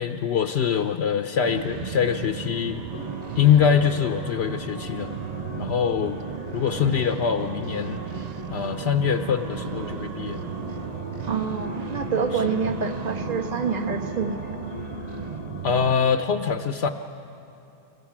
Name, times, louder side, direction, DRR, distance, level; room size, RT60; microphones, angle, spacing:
voice 1, 0.0-2.8 3.4-5.1 5.6-6.2 6.5-8.0 8.5-10.4 12.3-12.6 15.6-16.9, left 7 dB, 70° left, 7 dB, 0.8 m, -23 dB
sound 1, 1.4-15.9, right 8 dB, 55° right, 0.5 m, -34 dB
sound 2, 2.9-16.2, left 6 dB, 85° left, 1.2 m, -41 dB
voice 2, 11.2-14.6, right 5 dB, 40° right, 5 dB, 1.2 m, -27 dB
29.5 x 15.0 x 6.0 m, 2.9 s
omnidirectional pair, 1.2 m